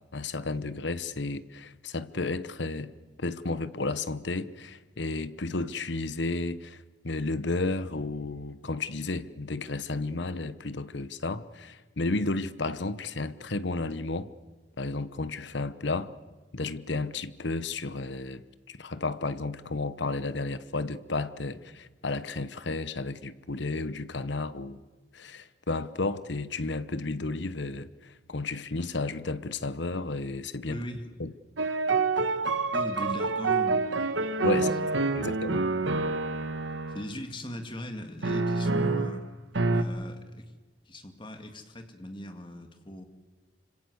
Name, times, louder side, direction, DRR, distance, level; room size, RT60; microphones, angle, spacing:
voice 1, 0.0-2.9 3.2-14.3 14.8-16.1 16.5-24.8 25.1-30.8 31.2-31.3 34.4-34.7 35.1-35.7, left 3 dB, 70° left, 1.0 m, -32 dB
voice 2, 30.7-31.1 32.7-34.1 34.5-35.0 36.9-39.2 39.7-40.5 40.9-43.0, equal, 25° left, 2.2 m, -39 dB
sound 1, 31.6-37.1 38.2-39.2 39.5-39.8, right 3 dB, 80° right, 1.3 m, -27 dB
26.0 x 25.5 x 8.0 m
head